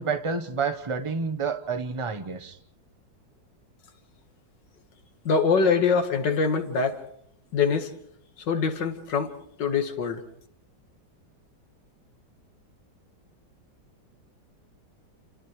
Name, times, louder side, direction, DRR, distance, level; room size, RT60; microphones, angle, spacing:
voice 1, 0.0-2.6, right 5 dB, 25° right, 0.7 m, -29 dB
voice 2, 5.3-7.0 7.5-7.9 8.4-10.2, left 5 dB, 75° left, 2.2 m, -24 dB
30.0 x 28.5 x 3.2 m
omnidirectional pair, 2.0 m